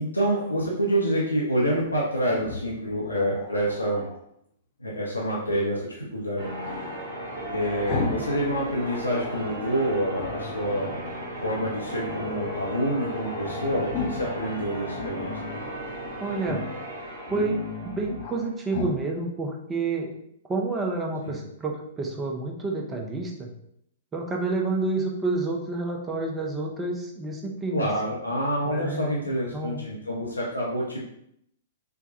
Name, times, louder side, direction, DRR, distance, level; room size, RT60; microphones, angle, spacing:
voice 1, 0.0-4.0 4.8-6.8 7.5-10.9 11.4-15.3 21.2-21.4 27.7-31.0, equal, 85° left, -4 dB, 0.6 m, -27 dB
Growling, 2.2-4.2 6.6-8.3 8.6-9.5 10.1-11.0 11.5-12.5 12.8-12.9 13.1-14.4 14.9-15.7 16.4-16.8 17.2-18.4 18.7-19.0, left 4 dB, 40° left, 0.7 m, -36 dB
Church bell, 6.4-18.6, equal, 55° right, 1.3 m, -36 dB
voice 2, 16.2-16.6 17.3-17.6 17.9-20.1 20.5-23.5 24.1-27.9 28.7-29.8, right 3 dB, 15° right, 0 dB, 0.6 m, -29 dB
4.5 x 2.2 x 2.6 m, 0.73 s
figure-of-eight pair, 110°, 0 cm